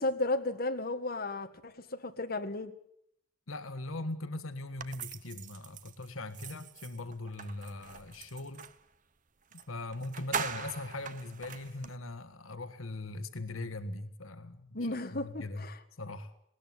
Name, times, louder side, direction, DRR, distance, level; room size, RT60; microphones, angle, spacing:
voice 1, 0.0-2.7 14.7-15.8, left 2 dB, 45° left, 6 dB, 1.8 m, -34 dB
voice 2, 3.5-8.7 9.7-15.7 16.0-16.3, left 2 dB, 85° left, 10 dB, 1.5 m, -40 dB
sound 1, 4.8-8.8 9.5-9.6 9.9-12.0, right 6 dB, 40° right, 1.0 m, -41 dB
20.0 x 19.0 x 9.4 m, 0.69 s
head